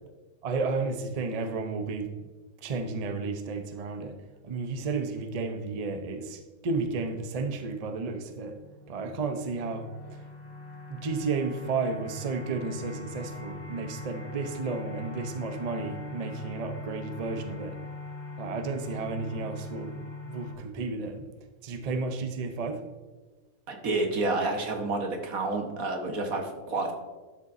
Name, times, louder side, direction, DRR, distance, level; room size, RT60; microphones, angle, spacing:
voice 1, 0.4-2.1 2.6-4.2 4.4-8.6 8.9-10.2 10.9-17.8 18.4-21.3 21.6-22.8, right 4 dB, 40° right, 6 dB, 0.6 m, -32 dB
sound 1, 8.5-20.5, left 3 dB, 45° left, 1.9 m, -42 dB
voice 2, 23.7-26.9, right 2 dB, 80° right, 3 dB, 1.7 m, -29 dB
12.0 x 6.8 x 2.6 m, 1.3 s
omnidirectional pair, 1.5 m